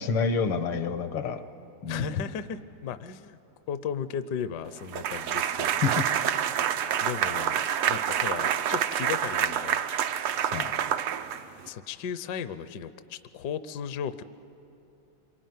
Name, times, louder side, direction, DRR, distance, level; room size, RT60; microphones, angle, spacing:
voice 1, 0.0-1.4 1.8-2.2 5.8-6.1 10.5-10.7, left 5 dB, 80° left, 9 dB, 2.1 m, -28 dB
voice 2, 1.9-3.4 3.7-5.8 6.1-6.7 7.0-9.8 10.1-10.8 11.7-14.2, left 8 dB, 65° left, 12 dB, 1.1 m, -36 dB
sound 1, 4.9-11.7, right 9 dB, 85° right, 1.8 m, -27 dB
26.5 x 24.0 x 9.4 m, 2.7 s
omnidirectional pair, 2.4 m